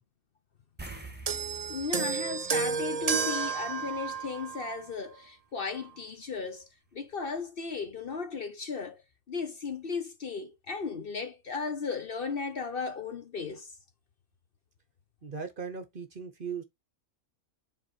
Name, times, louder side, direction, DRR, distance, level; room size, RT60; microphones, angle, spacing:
sound 1, 0.8-3.6 3.9-4.1 6.9-7.0 7.4-7.5, right 3 dB, 10° right, 1.2 m, -47 dB
sound 2, 1.3-4.9 5.8-5.9, right 6 dB, 75° right, 0.3 m, -31 dB
voice 1, 1.7-9.0 9.3-13.7, left 5 dB, 45° left, 0.9 m, -35 dB
voice 2, 15.2-16.6, right 6 dB, 45° right, 0.9 m, -38 dB
7.2 x 3.9 x 4.3 m
omnidirectional pair, 1.4 m